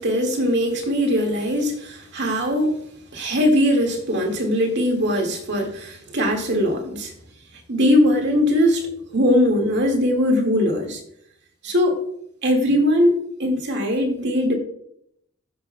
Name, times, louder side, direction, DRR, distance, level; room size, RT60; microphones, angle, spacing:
voice 1, 0.0-2.7 3.1-7.1 7.7-8.8 9.1-11.0 11.6-12.0 12.4-14.5, equal, 60° right, 2 dB, 1.9 m, -20 dB
13.0 x 6.1 x 2.2 m, 0.69 s
head